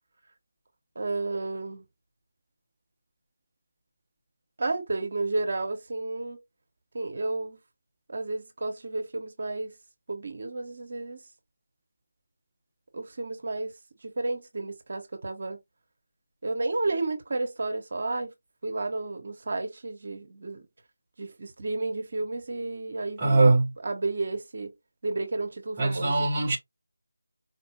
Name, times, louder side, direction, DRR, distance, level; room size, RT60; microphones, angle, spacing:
voice 1, 0.9-1.8 4.6-6.4 6.9-7.6 8.1-9.7 10.1-11.2 12.9-13.7 14.0-15.6 16.4-18.3 18.6-20.6 21.2-23.5 23.8-24.7 25.0-26.3, right 2 dB, 45° right, 1.2 m, -32 dB
voice 2, 23.2-23.7 25.8-26.6, right 2 dB, 15° right, 1.1 m, -21 dB
4.5 x 2.5 x 3.1 m
figure-of-eight pair, 160°, 0 cm